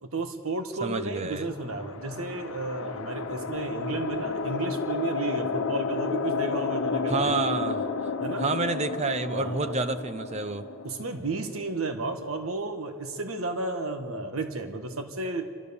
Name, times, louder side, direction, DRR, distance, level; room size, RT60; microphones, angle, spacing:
voice 1, 0.0-7.5 8.2-8.5 9.3-9.7 10.8-15.5, right 3 dB, 85° right, 7 dB, 1.5 m, -33 dB
voice 2, 0.8-1.5 7.1-8.1 8.4-10.7, right 3 dB, 30° right, 11 dB, 0.7 m, -29 dB
sound 1, 1.4-11.8, left 4 dB, 80° left, 0.9 m, -32 dB
28.5 x 13.0 x 6.9 m, 2.3 s
head